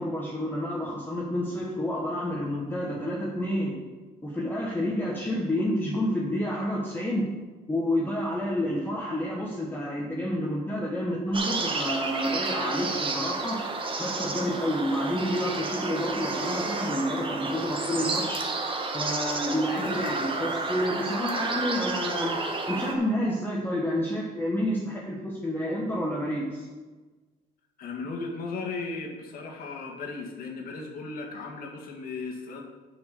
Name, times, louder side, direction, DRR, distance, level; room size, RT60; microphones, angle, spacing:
voice 1, 0.0-3.8 4.2-7.3 7.7-13.6 14.0-18.4 18.9-22.4 22.7-26.7, equal, 10° left, -3 dB, 1.4 m, -29 dB
sound 1, 11.3-23.0, right 3 dB, 30° right, 1.4 m, -31 dB
voice 2, 27.8-32.6, left 3 dB, 60° left, 0 dB, 1.9 m, -36 dB
7.2 x 7.0 x 6.6 m, 1.3 s
cardioid pair, 110°, 17 cm